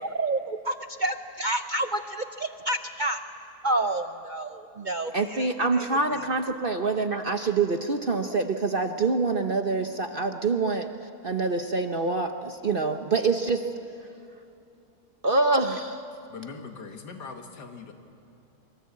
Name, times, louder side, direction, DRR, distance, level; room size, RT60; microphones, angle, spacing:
voice 1, 0.0-3.2 3.6-5.1 5.7-5.8, right 2 dB, 75° right, 8 dB, 0.4 m, -29 dB
voice 2, 5.1-10.9 11.2-13.7 15.2-16.0, right 3 dB, 40° right, 6 dB, 0.9 m, -26 dB
voice 3, 16.3-17.9, left 5 dB, 85° left, 4 dB, 2.4 m, -41 dB
25.0 x 23.5 x 8.5 m, 2.7 s
omnidirectional pair, 1.8 m